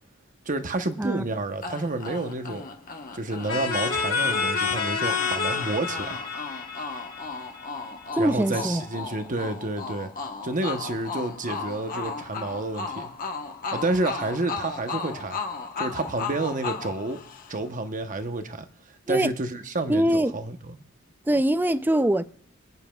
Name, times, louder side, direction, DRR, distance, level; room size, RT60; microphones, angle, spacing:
voice 1, 0.5-2.7 3.1-6.2 8.2-10.1 10.4-13.1 13.7-15.4 15.8-17.2 17.5-18.7 19.1-20.6, right 2 dB, 40° right, 1.0 m, -29 dB
sound 1, 1.6-17.8, left 4 dB, 45° left, 1.1 m, -36 dB
sound 2, 3.5-8.1, left 5 dB, 65° left, 2.9 m, -28 dB
voice 2, 8.1-8.8 19.1-19.3 19.9-20.4 21.3-22.2, right 1 dB, 10° right, 0.4 m, -23 dB
25.0 x 9.6 x 2.3 m
head